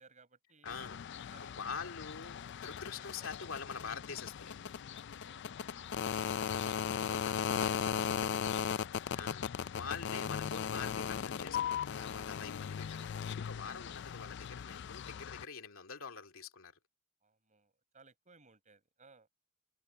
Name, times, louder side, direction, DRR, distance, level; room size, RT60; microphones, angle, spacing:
voice 1, 0.0-0.9 1.3-1.8 2.2-3.5 5.1-5.7 7.0-8.9 17.2-19.3, right 4 dB, 35° right, 6.8 m, -63 dB
voice 2, 0.6-4.6 6.9-7.4 9.2-16.7, left 5 dB, 70° left, 2.7 m, -45 dB
sound 1, 0.7-15.4, left 7 dB, 55° left, 0.4 m, -38 dB
head